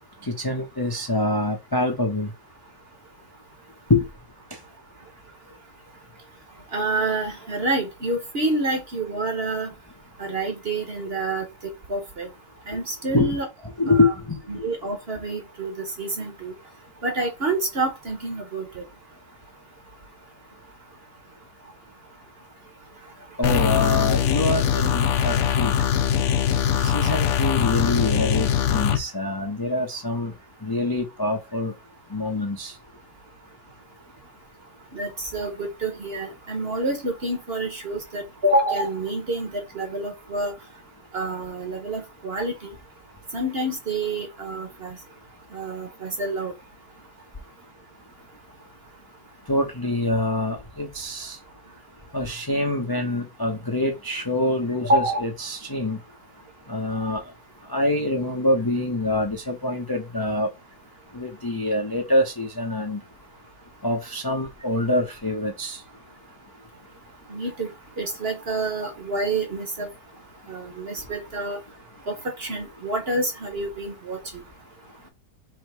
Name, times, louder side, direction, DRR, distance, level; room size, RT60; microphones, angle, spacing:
voice 1, 0.3-2.3 3.9-4.1 13.1-13.4 13.8-14.7 23.4-25.7 26.8-30.3 30.6-31.7 32.1-32.7 49.5-51.4 52.1-56.0 56.7-57.2 57.7-60.5 61.1-63.0 63.8-65.8, left 2 dB, 25° left, 0.5 m, -25 dB
voice 2, 6.7-9.7 10.2-11.4 11.9-12.3 12.7-13.5 13.9-14.1 14.5-16.5 17.0-18.8 34.9-40.5 41.1-42.7 43.3-45.0 45.5-46.5 54.9-55.2 67.3-67.7 68.0-69.9 70.5-71.6 72.1-74.2, right 2 dB, 45° right, 1.1 m, -27 dB
sound 1, 23.4-29.0, left 8 dB, 65° left, 0.7 m, -22 dB
3.6 x 3.2 x 4.7 m
omnidirectional pair, 1.8 m